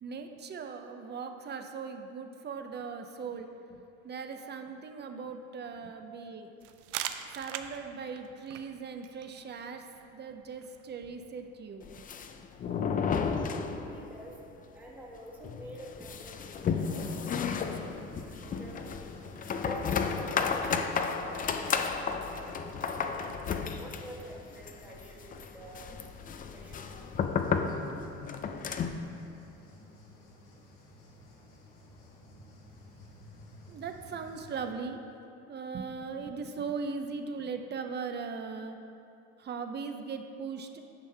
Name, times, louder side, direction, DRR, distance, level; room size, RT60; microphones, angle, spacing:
voice 1, 0.0-6.5 7.3-9.8 10.1-12.0 33.7-35.0 35.5-38.8 39.4-40.8, right 5 dB, 30° right, 6 dB, 0.6 m, -39 dB
sound 1, 6.6-12.1, right 11 dB, 85° right, 0.5 m, -43 dB
sound 2, 11.8-14.2 14.5-14.6 14.9-15.0 15.4-29.1, left 6 dB, 25° left, 0.4 m, -33 dB
voice 2, 13.3-14.4 14.7-17.8 18.4-19.2 19.6-23.3 23.7-26.0 26.5-27.2, right 1 dB, 5° right, -5 dB, 1.2 m, -48 dB
sound 3, 17.3-34.6, left 1 dB, 70° left, 1.5 m, -54 dB
9.6 x 5.4 x 3.3 m, 2.7 s
supercardioid pair, 95°, 33 cm